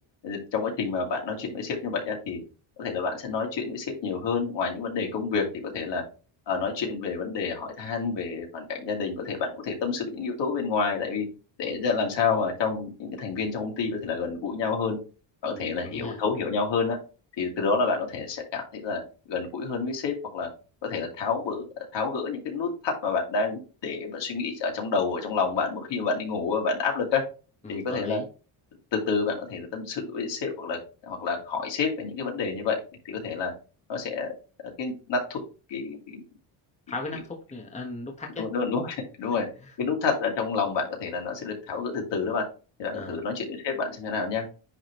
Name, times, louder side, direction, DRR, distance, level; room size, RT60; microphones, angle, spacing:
voice 1, 0.2-2.4 2.8-6.0 6.5-11.3 11.6-15.0 15.4-17.0 17.4-19.0 19.3-20.5 20.8-21.7 21.9-27.2 27.7-28.2 28.9-30.8 31.0-33.5 33.9-34.3 34.8-35.4 35.7-36.2 38.4-39.5 39.8-42.4 42.8-44.5, left 5 dB, 55° left, 1 dB, 2.6 m, -29 dB
voice 2, 15.4-16.2 27.6-28.3 36.9-38.4 42.9-43.2, left 3 dB, 15° left, 2 dB, 1.2 m, -37 dB
10.0 x 3.6 x 3.1 m, 0.34 s
cardioid pair, 130°, 50 cm